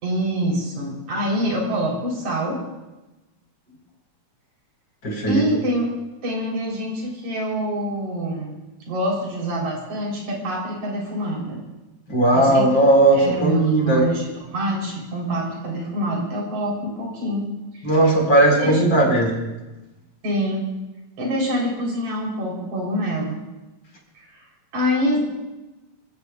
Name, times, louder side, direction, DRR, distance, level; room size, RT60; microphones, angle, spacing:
voice 1, 0.0-2.6 5.3-5.9 6.2-8.6 8.9-11.6 12.3-12.7 13.1-17.9 18.5-18.8 20.2-20.7 21.2-23.4 24.2-24.4 24.7-25.2, equal, 70° right, -2 dB, 5.3 m, -25 dB
voice 2, 5.0-5.4 12.1-14.0 17.8-19.3, right 1 dB, 40° left, -2 dB, 5.3 m, -17 dB
28.5 x 15.0 x 2.4 m, 1.0 s
omnidirectional pair, 3.4 m